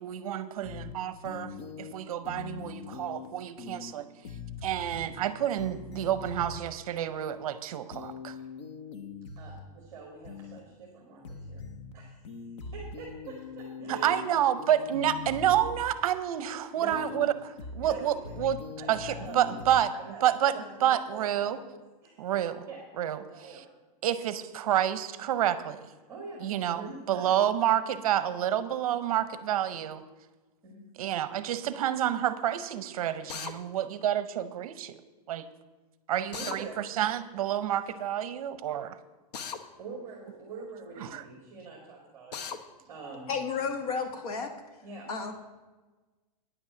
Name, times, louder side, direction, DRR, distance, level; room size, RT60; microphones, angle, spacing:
voice 1, 0.0-8.4 13.9-17.3 17.7-18.6 18.9-19.9 20.2-20.6 20.8-21.6 22.2-22.7 23.0-23.6 24.0-25.9 26.4-30.0 31.0-35.0 35.3-35.5 36.1-39.0 41.0-41.2, right 11 dB, 60° right, 13 dB, 0.6 m, -29 dB
sound 1, 0.6-0.9 1.2-1.9 2.2-3.3 3.6-3.9 4.2-5.3 5.6-6.6 7.9-9.6 10.2-10.6 11.2-11.9 12.2-14.3 14.6-15.9 16.9-17.3 17.6-17.9 18.2-19.8, left 5 dB, 45° left, 0.9 m, -42 dB
voice 2, 9.3-11.6 11.9-12.2 12.7-14.3 16.7-17.1 17.8-18.3 18.8-19.6 19.9-20.2 20.5-22.2 22.7-22.8 23.3-23.6 26.1-27.3 30.6-30.9 36.3-36.8 39.8-42.4 42.9-43.3 44.8-45.1, right 4 dB, 15° right, -1 dB, 1.6 m, -44 dB
Drill, 33.3-33.5 36.3-36.6 39.3-39.6 42.3-42.6, left 6 dB, 85° left, 1.0 m, -36 dB
voice 3, 43.3-44.5 45.1-45.3, left 5 dB, 60° left, 6 dB, 1.4 m, -32 dB
9.6 x 5.9 x 7.8 m, 1.2 s
supercardioid pair, 175°, 21 cm